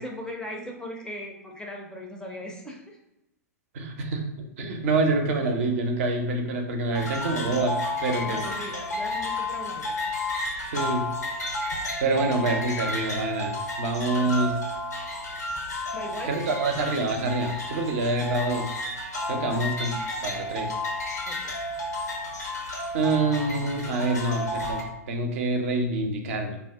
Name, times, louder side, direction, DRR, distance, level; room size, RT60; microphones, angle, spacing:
voice 1, 0.0-3.0 5.3-5.4 8.2-10.0 12.1-12.4 14.1-14.3 15.9-16.3 19.5-19.6 21.3-21.5, left 1 dB, 10° left, 1 dB, 0.4 m, -39 dB
voice 2, 3.7-4.2 4.6-7.8 8.0-8.4 10.7-11.1 12.0-14.5 16.2-18.7 19.3-19.9 20.2-20.7 22.9-26.6, right 2 dB, 55° right, 4 dB, 0.6 m, -26 dB
sound 1, 6.9-24.8, left 2 dB, 90° left, 0.6 m, -32 dB
2.5 x 2.1 x 3.5 m, 0.89 s
figure-of-eight pair, 105°, 9 cm